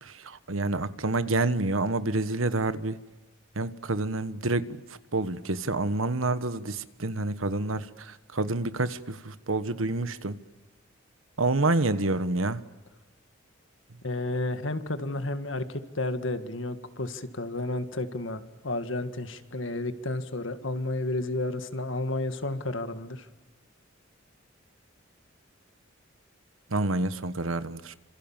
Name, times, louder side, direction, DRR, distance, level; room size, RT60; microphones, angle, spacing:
voice 1, 0.0-3.0 3.6-4.8 5.1-10.4 11.4-12.6 26.7-27.9, right 2 dB, 80° right, 13 dB, 1.3 m, -28 dB
voice 2, 14.0-23.3, left 2 dB, 65° left, 9 dB, 1.9 m, -32 dB
28.0 x 26.5 x 7.4 m, 1.1 s
head